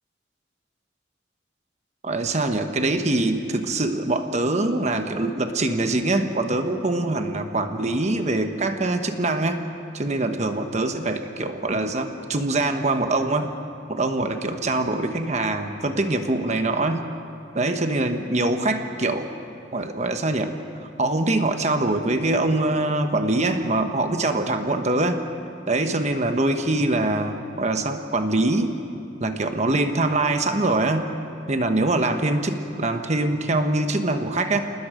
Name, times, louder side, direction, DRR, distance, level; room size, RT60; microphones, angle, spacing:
voice 1, 2.0-9.6 9.9-13.5 13.9-17.0 17.5-19.3 19.7-20.5 20.8-25.2 25.7-28.7 29.2-31.1 31.5-34.6, right 2 dB, 40° right, 6 dB, 1.2 m, -23 dB
28.0 x 19.5 x 5.1 m, 2.6 s
head